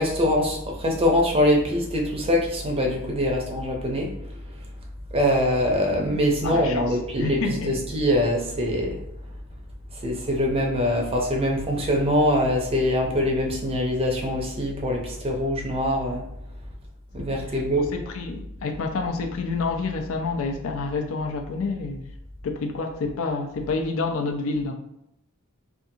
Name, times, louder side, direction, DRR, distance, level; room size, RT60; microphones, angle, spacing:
voice 1, 0.0-4.1 5.1-9.0 10.0-16.2 17.1-17.9, left 1 dB, 25° right, 0 dB, 0.5 m, -23 dB
voice 2, 6.4-7.8 17.2-17.6 17.9-22.0 22.4-24.7, left 3 dB, 65° left, 4 dB, 0.4 m, -28 dB
2.6 x 2.4 x 2.6 m, 0.79 s
head